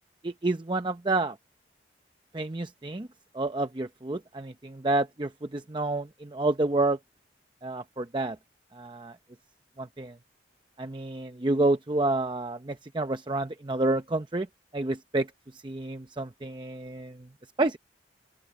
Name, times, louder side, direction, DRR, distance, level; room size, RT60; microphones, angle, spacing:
voice 1, 0.2-1.4 2.3-3.1 3.3-7.0 7.6-8.4 8.7-9.2 9.8-10.1 10.8-14.5 14.7-15.3 15.6-17.2 17.6-17.8, right 2 dB, 25° right, 0.7 m, -29 dB
open air
head